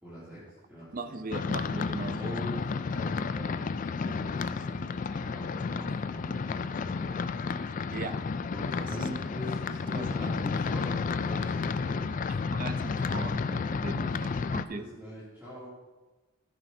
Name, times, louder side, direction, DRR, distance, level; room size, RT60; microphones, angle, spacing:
voice 1, 0.0-1.3 2.2-7.1 8.5-12.1 13.8-14.4 14.7-15.7, equal, 10° right, -11 dB, 2.8 m, -43 dB
voice 2, 0.9-2.4 7.9-8.2 8.8-9.1 9.9-10.1 12.3-14.9, right 3 dB, 40° right, 10 dB, 0.6 m, -39 dB
sound 1, 1.3-14.6, left 4 dB, 40° left, 0.3 m, -31 dB
15.0 x 9.1 x 2.8 m, 1.2 s
head